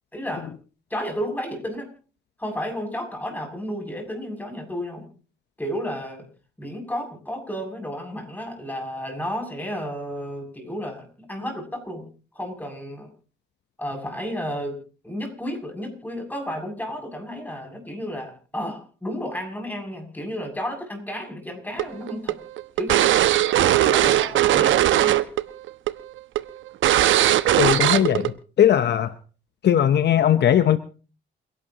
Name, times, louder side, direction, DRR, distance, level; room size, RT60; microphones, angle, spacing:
voice 1, 0.1-0.5 0.9-1.9 2.4-5.1 5.6-6.3 6.6-12.1 12.3-13.1 13.8-14.8 15.0-22.4 22.8-23.2 23.8-25.1, equal, 10° left, 2 dB, 7.3 m, -32 dB
sound 1, 21.8-25.4 25.7-25.9 26.4-26.5 26.8-28.3, right 13 dB, 75° right, 1.0 m, -19 dB
voice 2, 27.6-29.2 29.6-30.8, left 10 dB, 60° left, 11 dB, 0.9 m, -19 dB
29.0 x 11.5 x 3.0 m, 0.38 s
cardioid pair, 90°, 20 cm